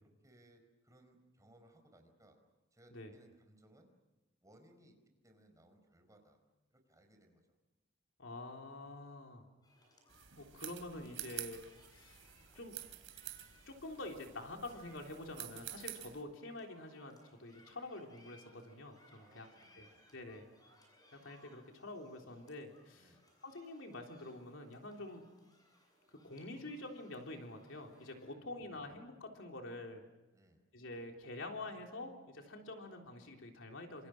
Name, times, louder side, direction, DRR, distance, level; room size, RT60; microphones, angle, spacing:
voice 1, 0.0-2.4 2.7-3.9 4.4-5.0 5.2-6.4 6.7-7.4 19.2-20.0 22.9-23.2 28.3-28.6 30.3-30.6, right 1 dB, 15° right, 5 dB, 4.9 m, -65 dB
voice 2, 8.2-9.4 10.4-11.6 11.9-12.2 12.5-12.8 13.6-19.5 19.8-19.9 20.1-20.4 21.1-23.1 23.4-25.2 26.1-30.0 30.7-34.1, left 2 dB, 75° left, 2 dB, 3.7 m, -47 dB
sound 1, 9.6-28.2, left 1 dB, 20° left, 7.7 m, -67 dB
sound 2, 10.1-16.2, right 13 dB, 80° right, 2.9 m, -49 dB
28.0 x 27.0 x 6.2 m, 1.1 s
head